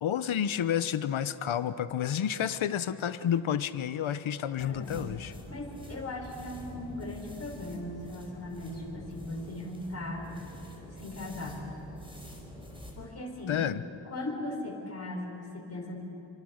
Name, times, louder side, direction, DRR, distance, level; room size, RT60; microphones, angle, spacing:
voice 1, 0.0-5.3 13.5-13.8, left 9 dB, 75° left, 13 dB, 1.0 m, -30 dB
voice 2, 4.6-5.1 5.5-10.3 10.9-11.7 13.0-13.6 14.0-16.0, left 2 dB, 30° left, 0 dB, 5.3 m, -38 dB
sound 1, 4.6-13.0, equal, 10° right, 4.7 m, -46 dB
28.0 x 25.5 x 6.6 m, 2.9 s
wide cardioid pair, 130°, 49 cm